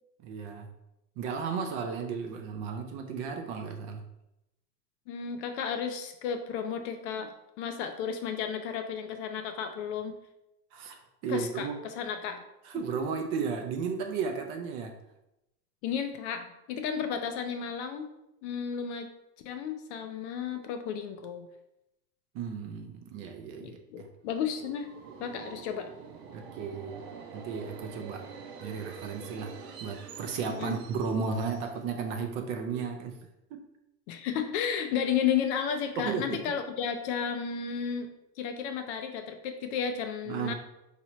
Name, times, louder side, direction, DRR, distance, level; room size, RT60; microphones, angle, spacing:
voice 1, 0.2-0.7 1.2-4.0 10.7-11.8 12.6-14.9 22.3-24.1 26.3-27.0 27.3-28.3 28.6-29.5 29.8-33.2 36.0-36.4 40.3-40.5, right 5 dB, 35° right, 4 dB, 0.5 m, -34 dB
voice 2, 5.1-10.1 11.3-12.4 15.8-18.1 18.4-19.1 19.4-21.5 23.6-24.9 25.2-25.9 30.6-30.8 34.1-38.1 38.4-40.5, left 7 dB, 45° left, 7 dB, 0.5 m, -33 dB
Subway metro underground, 24.3-32.1, right 6 dB, 75° right, 0.8 m, -46 dB
4.5 x 2.8 x 3.0 m, 0.88 s
hypercardioid pair, 115°, 49 cm